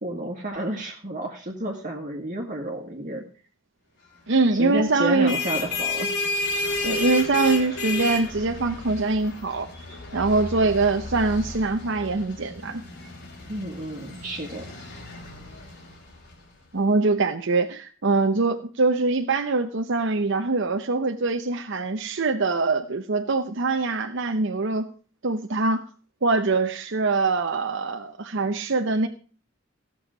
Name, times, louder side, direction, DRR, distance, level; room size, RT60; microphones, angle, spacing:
voice 1, 0.0-3.2 4.5-6.1 13.5-14.7, right 1 dB, 40° right, 1 dB, 1.8 m, -31 dB
voice 2, 4.3-5.4 6.8-9.7 10.1-12.8 16.7-24.9 25.2-25.8 26.2-29.1, right 3 dB, 60° right, 5 dB, 0.8 m, -23 dB
sound 1, 5.0-16.3, left 2 dB, 55° left, 3.1 m, -32 dB
16.0 x 7.2 x 5.0 m, 0.40 s
head